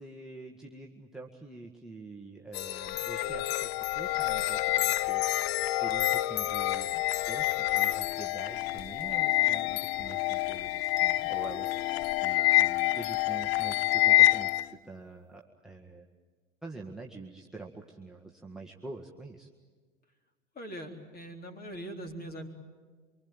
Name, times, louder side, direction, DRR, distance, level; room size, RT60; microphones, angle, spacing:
voice 1, 0.0-5.5 5.8-16.1 16.6-19.5, right 3 dB, ahead, -2 dB, 1.7 m, -46 dB
sound 1, 2.5-14.7, left 16 dB, 50° left, 0.7 m, -27 dB
voice 2, 20.5-22.5, right 1 dB, 25° left, 4 dB, 3.9 m, -41 dB
25.5 x 24.5 x 9.0 m, 1.5 s
figure-of-eight pair, 90°, 39 cm